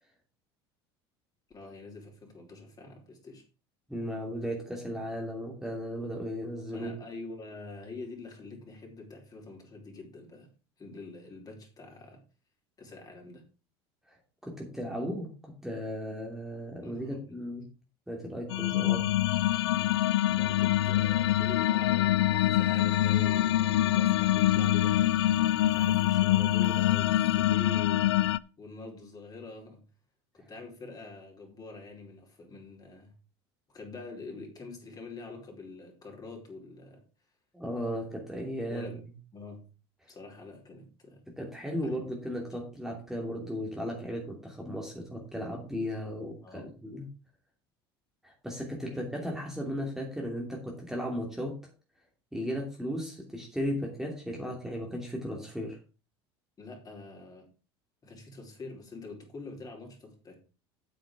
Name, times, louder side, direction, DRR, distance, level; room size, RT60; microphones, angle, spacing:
voice 1, 1.5-3.4 6.7-10.5 10.8-12.2 12.8-13.4 16.8-17.4 20.4-28.0 28.6-29.8 30.3-33.1 33.7-37.0 38.7-39.0 39.3-39.7 40.1-41.2 41.8-42.1 46.4-46.7 48.9-49.0 56.6-57.4 58.0-60.4, left 3 dB, 30° left, 1 dB, 4.8 m, -45 dB
voice 2, 3.9-6.9 14.1-14.2 14.4-17.7 18.1-19.1 37.5-38.9 41.4-47.1 48.2-51.6 52.3-55.8, equal, 5° right, -1 dB, 2.9 m, -36 dB
sound 1, 18.5-28.4, left 13 dB, 85° left, 0.4 m, -25 dB
8.7 x 7.9 x 5.0 m, 0.34 s
hypercardioid pair, 80°, 13 cm